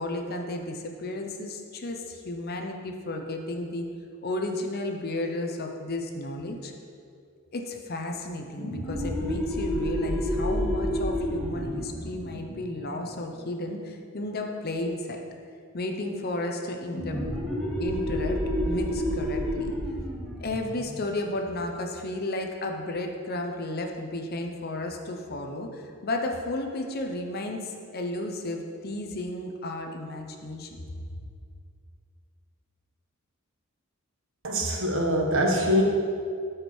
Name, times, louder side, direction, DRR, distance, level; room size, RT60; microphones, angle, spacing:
voice 1, 0.0-3.9 4.2-6.7 7.5-15.2 15.7-17.2 17.8-18.4 18.6-19.8 20.4-30.7, left 2 dB, 45° left, 3 dB, 0.8 m, -33 dB
sound 1, 8.5-13.8 16.9-22.2, equal, 5° left, 1.5 m, -30 dB
voice 2, 34.4-35.8, equal, 60° right, 1 dB, 1.3 m, -24 dB
12.5 x 5.0 x 4.5 m, 2.3 s
head